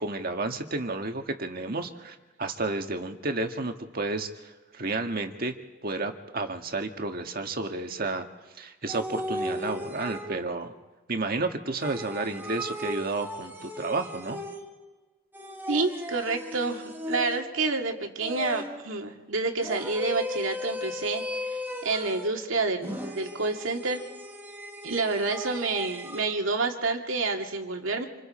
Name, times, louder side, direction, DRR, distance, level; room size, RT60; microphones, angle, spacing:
voice 1, 0.0-5.6 5.8-8.3 8.6-10.7 11.1-14.4, right 2 dB, 50° right, 5 dB, 1.7 m, -31 dB
sound 1, 8.9-10.6 11.8-14.9 15.3-17.7 18.2-18.9 19.6-22.4 22.8-26.3, left 1 dB, 10° right, 1.5 m, -37 dB
voice 2, 15.7-24.0 24.8-28.1, right 3 dB, 90° right, 3 dB, 2.3 m, -29 dB
28.0 x 27.0 x 4.4 m, 1.2 s
head